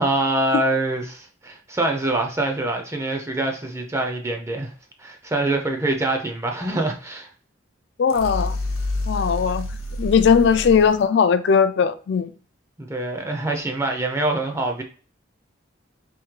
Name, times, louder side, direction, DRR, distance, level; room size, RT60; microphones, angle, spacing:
voice 1, 0.0-4.7 5.0-7.3 12.8-14.8, right 2 dB, 15° right, 0.4 m, -25 dB
voice 2, 8.0-8.6 9.1-9.7 10.0-12.3, left 6 dB, 55° left, 0.3 m, -18 dB
sound 1, 8.1-11.0, left 2 dB, 85° left, 0.8 m, -28 dB
3.5 x 3.1 x 3.1 m
head